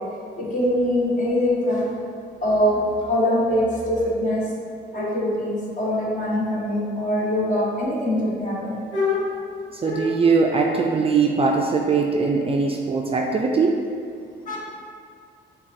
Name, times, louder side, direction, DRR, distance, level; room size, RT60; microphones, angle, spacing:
voice 1, 0.4-1.8 2.4-2.8 3.1-4.4 4.9-9.2 9.8-10.1 14.4-14.6, left 1 dB, 40° left, -7 dB, 1.5 m, -23 dB
voice 2, 9.8-13.8, right 4 dB, 30° right, 0 dB, 0.4 m, -21 dB
6.2 x 2.3 x 2.7 m, 2.3 s
cardioid pair, 90°, 20 cm